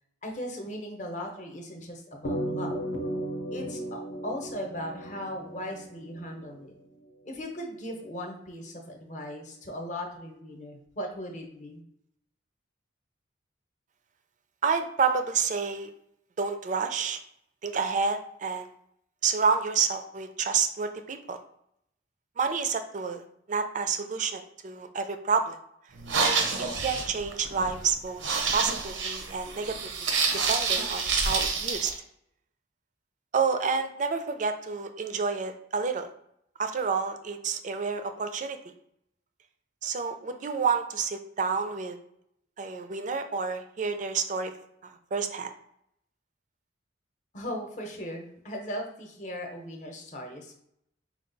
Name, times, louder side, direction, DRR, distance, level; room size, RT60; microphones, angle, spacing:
voice 1, 0.2-2.7 3.5-6.7 7.2-11.8 47.3-50.5, equal, 40° left, 2 dB, 0.8 m, -38 dB
sound 1, 2.2-6.9, right 1 dB, 75° left, 0.6 m, -35 dB
voice 2, 14.6-15.9 16.4-17.2 17.6-18.7 19.2-21.4 22.4-25.6 26.2-26.5 26.8-28.2 28.5-30.1 30.5-31.9 33.3-36.1 36.6-38.6 39.8-42.0 42.6-44.5 44.8-45.5, right 5 dB, 40° right, 8 dB, 0.4 m, -29 dB
sound 2, 26.0-31.9, right 5 dB, 90° right, 0.6 m, -28 dB
4.5 x 2.3 x 3.8 m, 0.73 s
head